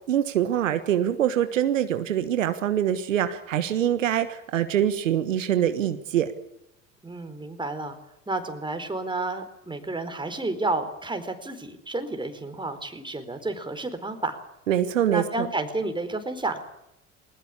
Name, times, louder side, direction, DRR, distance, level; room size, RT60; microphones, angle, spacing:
voice 1, 0.1-6.3 14.7-15.5, right 10 dB, 80° right, 10 dB, 1.5 m, -24 dB
voice 2, 7.0-8.0 8.3-14.4 15.1-16.6, right 2 dB, 10° right, 7 dB, 4.4 m, -31 dB
21.5 x 20.0 x 8.6 m, 0.82 s
hypercardioid pair, 65°, 38 cm